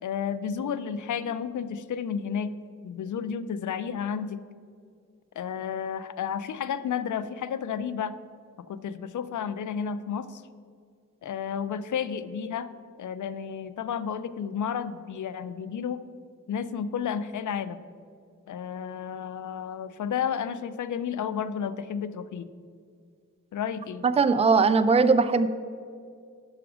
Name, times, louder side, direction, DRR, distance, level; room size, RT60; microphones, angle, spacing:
voice 1, 0.0-2.5 2.8-4.4 5.4-8.1 8.7-10.4 11.2-12.7 13.0-16.0 16.5-17.8 18.5-22.5 23.5-24.0, left 7 dB, 65° left, 14 dB, 0.4 m, -32 dB
voice 2, 24.0-25.5, right 4 dB, 20° right, 10 dB, 0.3 m, -20 dB
5.8 x 4.9 x 6.0 m, 2.2 s
cardioid pair, 60°, 33 cm